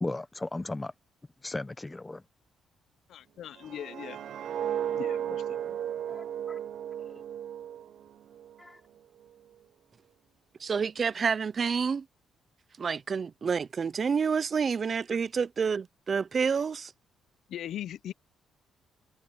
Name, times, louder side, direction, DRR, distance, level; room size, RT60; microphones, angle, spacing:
voice 1, 0.0-0.9 1.4-2.2 6.1-6.6 7.1-7.2 8.6-8.8, left 2 dB, 15° left, 1.0 m, -36 dB
voice 2, 3.1-4.2 4.9-5.6 17.5-18.1, left 11 dB, 70° left, 0.7 m, -39 dB
sound 1, 3.6-8.6 9.0-9.3, right 10 dB, 70° right, 1.1 m, -35 dB
voice 3, 10.6-12.0 12.8-16.9, right 6 dB, 40° right, 0.6 m, -28 dB
cardioid pair, 90°, 0 cm